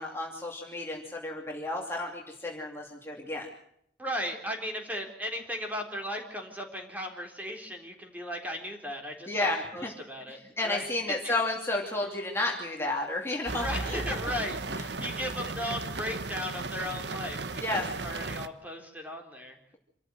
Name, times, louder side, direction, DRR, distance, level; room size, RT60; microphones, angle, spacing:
voice 1, 0.0-3.5 9.3-9.9 10.3-14.0 14.8-14.9 17.6-17.8, left 2 dB, 15° left, -1 dB, 2.8 m, -32 dB
voice 2, 4.0-10.9 11.2-11.4 13.6-19.6, equal, 10° right, 3 dB, 3.8 m, -36 dB
sound 1, 13.5-18.5, right 3 dB, 70° right, 1.2 m, -35 dB
27.0 x 14.0 x 7.7 m, 0.72 s
head